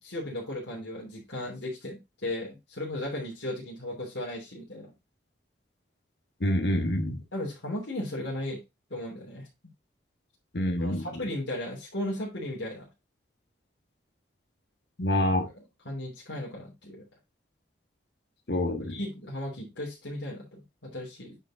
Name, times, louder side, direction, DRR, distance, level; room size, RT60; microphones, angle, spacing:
voice 1, 0.0-4.9 7.3-8.6 8.9-9.5 10.8-12.9 15.3-17.0 18.8-21.4, left 1 dB, 80° left, 3.0 m, -36 dB
voice 2, 6.4-7.2 10.5-11.1 15.0-15.5 18.5-19.0, left 1 dB, 65° left, 1.2 m, -26 dB
8.9 x 4.6 x 3.7 m
head